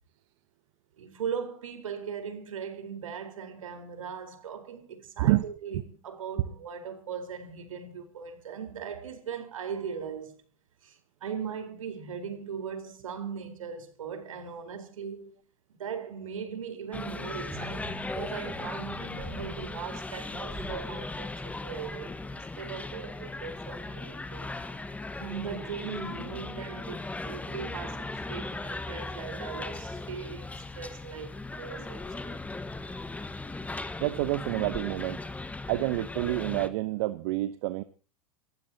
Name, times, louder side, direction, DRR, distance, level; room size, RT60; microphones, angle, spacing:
voice 1, 1.0-10.4 10.8-15.4 15.8-24.5 25.2-32.4, right 7 dB, 75° right, 4.3 m, -39 dB
sound 1, 16.9-36.7, left 2 dB, 10° left, 1.4 m, -38 dB
sound 2, 17.4-20.9 21.3-21.5, right 2 dB, 5° right, 7.2 m, -46 dB
voice 2, 34.0-35.2 35.7-37.8, right 17 dB, 60° right, 1.0 m, -28 dB
28.5 x 14.5 x 2.9 m
hypercardioid pair, 90°, 17 cm